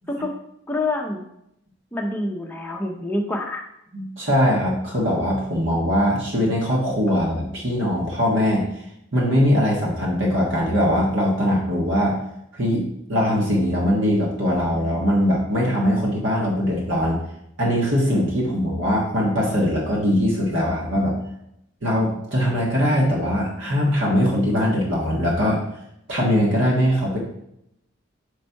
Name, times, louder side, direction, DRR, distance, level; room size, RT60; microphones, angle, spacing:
voice 1, 0.7-1.2 1.9-3.7, left 2 dB, 10° left, 0 dB, 0.7 m, -26 dB
voice 2, 3.9-8.7 9.1-12.2 12.5-17.2 17.6-21.2 21.8-25.6 26.1-27.2, equal, 60° right, -3 dB, 1.4 m, -21 dB
5.3 x 4.1 x 4.6 m, 0.78 s
head